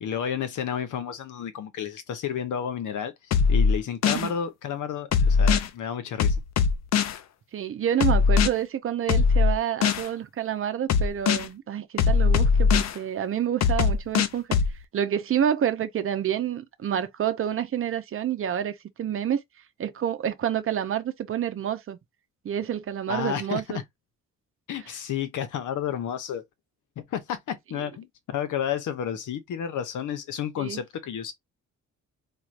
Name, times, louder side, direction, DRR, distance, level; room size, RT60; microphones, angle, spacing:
voice 1, 0.0-3.1 3.5-6.4 23.1-23.6 24.7-26.4 27.0-31.3, left 8 dB, 80° left, 0.9 m, -31 dB
sound 1, 3.3-4.3 5.1-5.7 6.2-7.2 8.0-8.5 9.1-10.1 10.9-11.5 12.0-12.9 13.6-14.7, left 5 dB, 60° left, 0.6 m, -20 dB
voice 2, 7.5-14.6 14.9-19.4 19.8-22.0 22.4-23.8 24.8-24.9 30.6-30.8, right 9 dB, 45° right, 0.6 m, -28 dB
4.5 x 2.4 x 2.5 m
wide cardioid pair, 175°, 30 cm